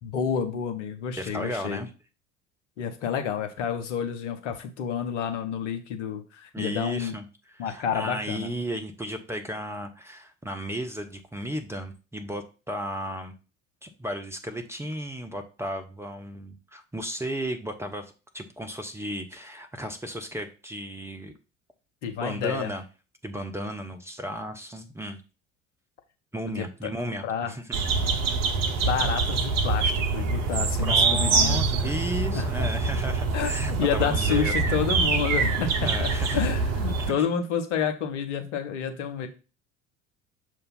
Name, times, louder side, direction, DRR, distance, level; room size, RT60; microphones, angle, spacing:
voice 1, 0.0-1.8 2.8-7.1 7.6-8.5 22.0-22.7 26.5-26.9 27.2-27.5 28.8-31.9 32.3-32.7 33.3-33.5 33.8-39.3, left 7 dB, 65° left, 6 dB, 1.0 m, -29 dB
voice 2, 1.2-1.9 6.5-13.3 13.8-21.3 22.2-22.8 23.2-25.2 26.3-27.8 30.8-34.8 35.8-36.4 37.0-37.2, equal, 5° right, 5 dB, 0.6 m, -34 dB
sound 1, 27.7-37.1, right 4 dB, 40° right, 0.9 m, -25 dB
6.7 x 2.7 x 5.6 m, 0.33 s
figure-of-eight pair, 65°, 39 cm